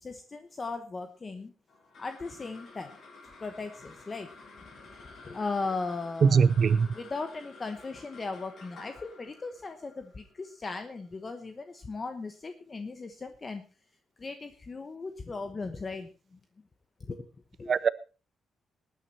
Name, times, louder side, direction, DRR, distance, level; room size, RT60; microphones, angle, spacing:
voice 1, 0.0-1.5 2.0-3.0 3.4-4.3 5.2-6.4 6.9-13.6 14.2-16.4 17.0-17.2 17.6-17.8, left 3 dB, 25° left, 1.0 m, -37 dB
sound 1, 1.7-12.3, left 3 dB, 55° left, 6.7 m, -52 dB
voice 2, 6.2-6.9 17.7-17.9, right 6 dB, 40° right, 0.6 m, -21 dB
19.5 x 9.4 x 4.3 m
wide cardioid pair, 155°, 0 cm